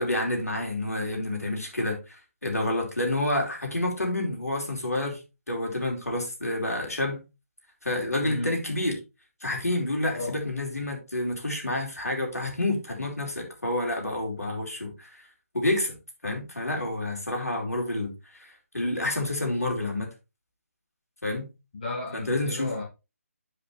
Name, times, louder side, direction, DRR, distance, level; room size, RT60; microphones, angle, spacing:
voice 1, 0.0-5.2 5.5-7.2 7.8-9.0 9.4-15.2 15.5-16.0 16.2-20.1 21.2-21.5 22.1-22.7, left 1 dB, 75° left, 4.7 m, -29 dB
voice 2, 8.2-8.6 10.1-10.4 21.7-22.8, left 2 dB, 40° left, 2.3 m, -33 dB
10.0 x 5.8 x 3.4 m
figure-of-eight pair, 150°, 8 cm